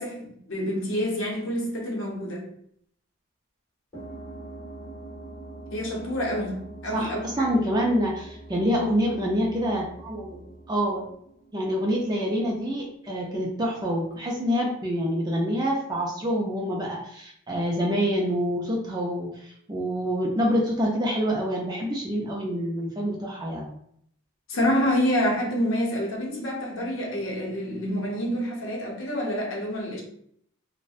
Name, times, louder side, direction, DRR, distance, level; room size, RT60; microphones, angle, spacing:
voice 1, 0.0-2.5 5.7-7.5 24.5-30.0, equal, 65° left, 0.7 m, -27 dB
sound 1, 3.9-12.1, right 2 dB, 15° left, 1.3 m, -43 dB
voice 2, 6.9-10.4 10.7-11.0 11.5-23.7, equal, 20° right, 0.4 m, -26 dB
2.5 x 2.0 x 2.4 m
head